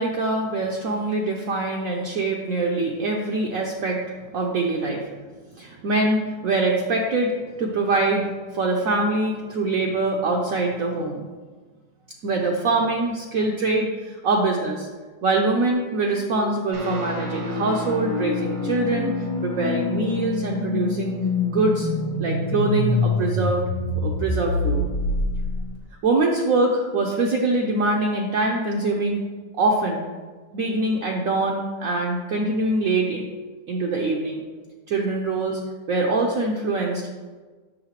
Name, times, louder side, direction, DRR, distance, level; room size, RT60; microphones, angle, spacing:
voice 1, 0.0-4.0 4.3-5.1 5.6-11.2 12.2-14.9 15.2-21.1 21.4-21.9 22.2-23.6 24.0-24.8 26.0-29.2 29.6-30.0 30.5-33.3 33.7-34.4 34.9-35.6 35.9-37.0, right 2 dB, 65° right, 0 dB, 0.9 m, -24 dB
sound 1, 15.7-25.8, left 3 dB, 80° left, 1.4 m, -27 dB
Guitar, 16.7-25.8, left 2 dB, 85° right, 2.0 m, -32 dB
6.6 x 6.3 x 2.9 m, 1.4 s
omnidirectional pair, 1.9 m